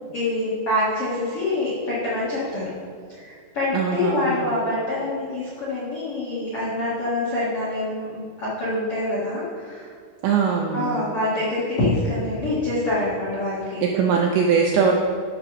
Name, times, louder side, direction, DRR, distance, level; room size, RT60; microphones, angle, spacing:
voice 1, 0.1-2.6 3.1-9.9 10.7-13.8, left 1 dB, 85° left, -9 dB, 1.2 m, -25 dB
voice 2, 3.7-4.4 10.2-11.0 13.8-14.9, right 6 dB, 85° right, 1 dB, 2.5 m, -21 dB
11.0 x 4.8 x 6.0 m, 2.1 s
omnidirectional pair, 5.8 m